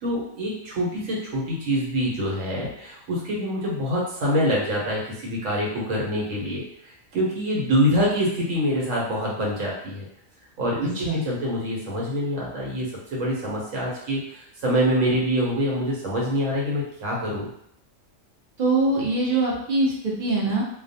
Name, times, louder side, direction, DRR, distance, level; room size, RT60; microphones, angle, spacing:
voice 1, 0.0-10.1 10.6-17.5, equal, 80° right, -4 dB, 1.2 m, -25 dB
voice 2, 10.8-11.2 18.6-20.6, right 2 dB, 50° right, -4 dB, 0.7 m, -23 dB
2.3 x 2.2 x 2.6 m, 0.71 s
omnidirectional pair, 1.3 m